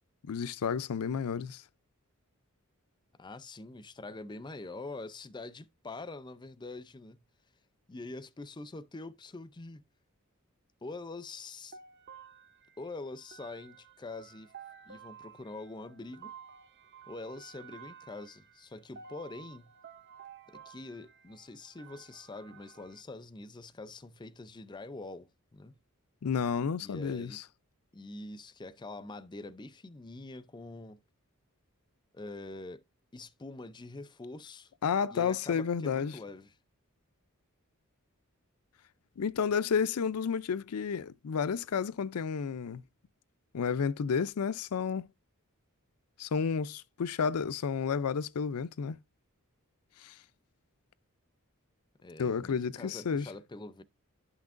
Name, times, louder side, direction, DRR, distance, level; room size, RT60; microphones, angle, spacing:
voice 1, 0.2-1.6 26.2-27.4 34.8-36.2 39.2-42.8 43.5-45.1 46.2-49.0 50.0-50.2 52.2-53.3, left 6 dB, 80° left, 0.4 m, -31 dB
voice 2, 3.2-7.2 7.9-9.8 10.8-11.8 12.8-14.5 14.9-16.3 17.1-19.7 20.5-25.8 26.8-27.4 27.9-31.0 32.1-32.8 33.1-34.7 35.1-36.5 52.0-53.8, left 2 dB, 20° left, 0.5 m, -45 dB
sound 1, 11.7-23.0, right 7 dB, 50° right, 0.8 m, -53 dB
11.0 x 5.9 x 2.5 m
head